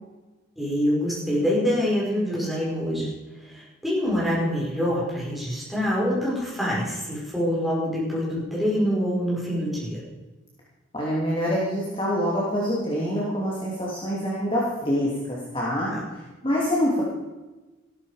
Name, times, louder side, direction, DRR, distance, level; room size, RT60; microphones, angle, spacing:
voice 1, 0.6-10.0 15.8-16.0, equal, ahead, -7 dB, 5.4 m, -26 dB
voice 2, 10.9-15.9 16.4-17.0, equal, 25° left, -6 dB, 2.8 m, -25 dB
14.5 x 13.0 x 5.1 m, 1.1 s
head